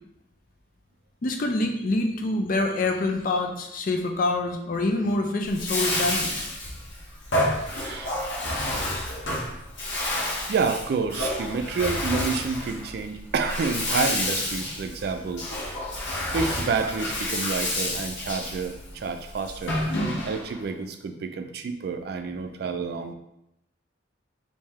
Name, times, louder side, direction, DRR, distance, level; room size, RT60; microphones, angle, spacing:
voice 1, 1.2-6.4, left 2 dB, 45° left, 4 dB, 0.4 m, -26 dB
Bathtub (filling or washing), 5.4-20.6, left 1 dB, 65° left, 1.0 m, -29 dB
voice 2, 7.6-8.2 10.5-15.5 16.3-19.8 20.2-23.1, right 4 dB, 55° right, 7 dB, 0.3 m, -29 dB
3.2 x 2.7 x 3.5 m, 0.82 s
head